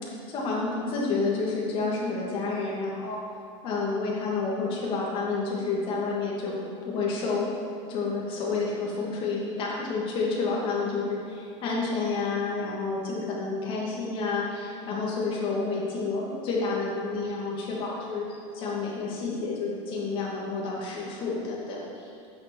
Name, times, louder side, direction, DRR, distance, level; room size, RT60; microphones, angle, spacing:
voice 1, 0.3-3.2 3.6-6.6 6.8-7.5 7.9-18.3 18.5-22.3, left 4 dB, 35° left, -4 dB, 2.3 m, -29 dB
9.3 x 7.0 x 6.3 m, 2.4 s
supercardioid pair, 170°, 15 cm